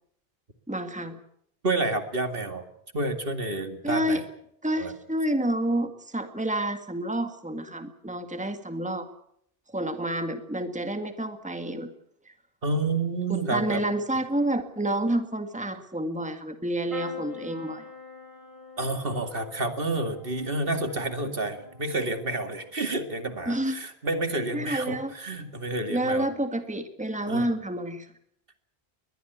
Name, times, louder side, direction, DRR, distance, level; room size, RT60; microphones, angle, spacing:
voice 1, 0.7-1.2 3.8-4.2 4.6-9.1 9.7-11.9 12.3-12.4 13.3-17.8 23.5-23.7 24.5-25.1 25.9-28.1, right 1 dB, 5° right, 7 dB, 1.8 m, -29 dB
voice 2, 1.6-2.6 2.9-4.2 4.8-4.9 12.6-13.8 18.8-26.3 27.3-27.5, right 2 dB, 60° right, 7 dB, 2.5 m, -29 dB
sound 1, 16.9-24.7 25.2-25.7 27.0-27.2 27.4-27.5, left 3 dB, 30° right, 3.7 m, -46 dB
22.5 x 20.5 x 8.2 m, 0.71 s
omnidirectional pair, 1.0 m